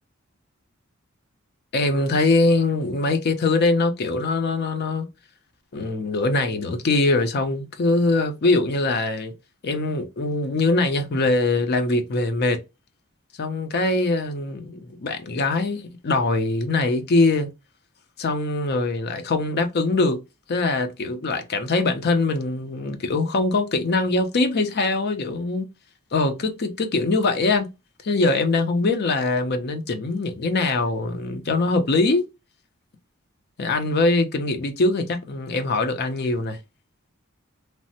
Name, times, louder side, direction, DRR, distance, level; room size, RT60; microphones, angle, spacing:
voice 1, 1.7-5.1 5.7-9.3 9.6-12.6 13.4-17.5 18.2-20.2 20.5-25.7 26.1-27.7 28.0-32.3 33.6-36.6, left 3 dB, 50° left, 0.5 m, -22 dB
3.1 x 2.0 x 2.6 m
head